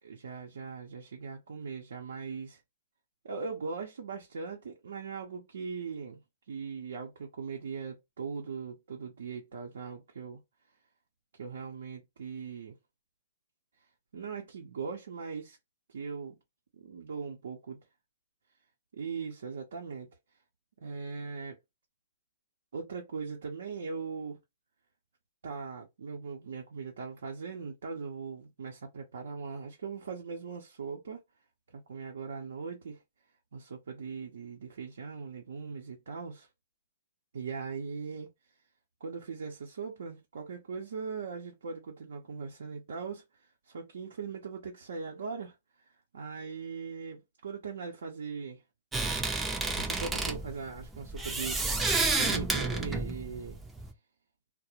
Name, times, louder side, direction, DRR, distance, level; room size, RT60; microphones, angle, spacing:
voice 1, 0.0-2.6 3.2-6.2 6.5-10.4 11.3-12.7 14.1-15.6 15.9-16.3 16.7-17.8 18.9-20.1 20.8-21.6 22.7-24.4 25.4-31.2 31.7-33.0 33.5-36.5 37.3-38.3 39.0-48.6 49.8-51.8 52.1-53.6, right 5 dB, 80° right, 0.6 m, -40 dB
sound 1, 48.9-53.9, right 3 dB, 10° right, 0.4 m, -31 dB
2.4 x 2.0 x 2.8 m
hypercardioid pair, 135°, 0 cm